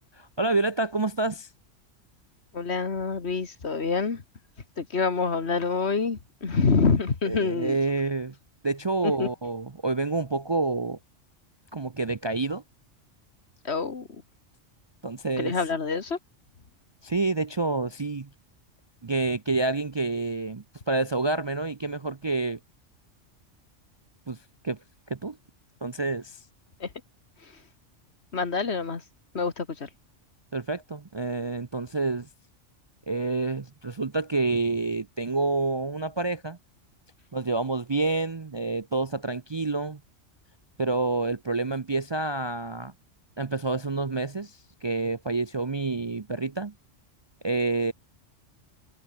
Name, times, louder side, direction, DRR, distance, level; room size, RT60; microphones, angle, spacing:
voice 1, 0.1-1.5 7.3-8.3 8.6-11.0 11.7-12.6 15.0-15.5 17.0-18.3 19.0-22.6 24.3-24.4 24.6-24.8 25.1-25.4 25.8-26.4 30.5-32.3 33.1-36.6 37.3-40.0 40.8-42.9 43.4-46.7 47.4-47.9, right 3 dB, 30° right, 0.5 m, -28 dB
voice 2, 2.5-4.2 4.8-7.8 9.0-9.3 13.6-14.2 15.4-16.2 26.8-26.9 27.4-27.6 28.3-29.0 29.3-29.9, left 4 dB, 60° left, 2.2 m, -27 dB
omnidirectional pair, 1.3 m